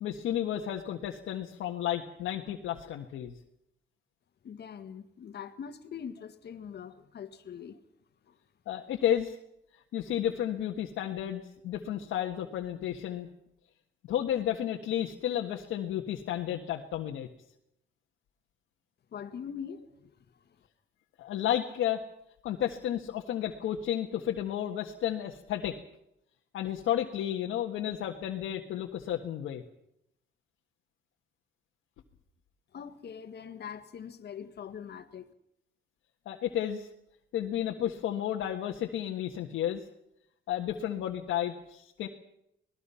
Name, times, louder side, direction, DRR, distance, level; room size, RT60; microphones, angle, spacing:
voice 1, 0.0-3.3 8.7-9.4 9.9-13.3 14.1-17.3 21.2-22.0 22.4-25.8 26.5-29.6 36.2-36.9 37.3-39.8 40.5-42.1, left 11 dB, 85° left, 1.6 m, -32 dB
voice 2, 4.4-7.8 8.3-8.4 19.1-20.1 32.7-35.3, left 7 dB, 55° left, 1.8 m, -42 dB
25.5 x 19.0 x 5.7 m
cardioid pair, 90°, 20 cm